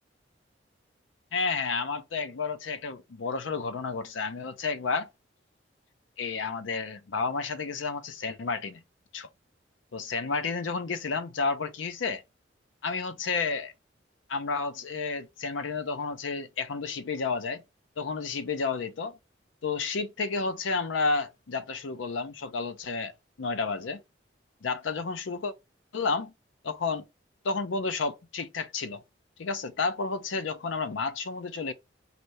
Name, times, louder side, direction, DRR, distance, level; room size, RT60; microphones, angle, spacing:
voice 1, 1.3-5.1 6.2-8.8 9.1-9.3 9.9-12.2 12.8-13.7 14.3-17.6 18.0-19.2 19.6-23.1 23.4-24.0 24.6-25.5 25.9-26.3 26.6-27.1 27.4-29.0 29.4-31.7, left 4 dB, 80° left, 0.5 m, -31 dB
4.2 x 2.7 x 3.2 m
head